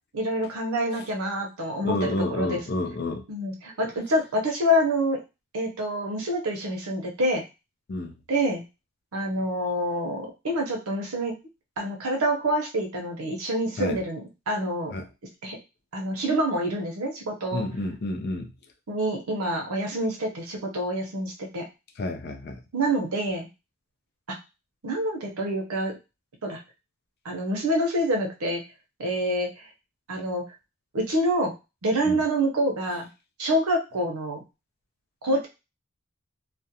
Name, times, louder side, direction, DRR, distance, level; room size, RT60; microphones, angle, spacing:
voice 1, 0.1-2.6 3.3-5.2 5.5-7.4 8.3-8.6 9.1-11.3 11.8-14.9 15.4-15.6 15.9-17.6 18.9-21.7 22.7-23.5 24.3-24.4 24.8-26.0 26.4-26.6 27.2-28.6 29.0-29.5 30.1-30.4 30.9-31.5 31.8-33.1 33.4-34.4 35.2-35.5, equal, 80° right, 2 dB, 0.7 m, -27 dB
voice 2, 1.8-3.2 7.9-8.1 13.8-14.0 14.9-15.0 17.5-18.5 22.0-22.6 32.0-32.2, left 2 dB, 45° left, 6 dB, 0.4 m, -29 dB
2.4 x 2.1 x 2.7 m, 0.27 s
head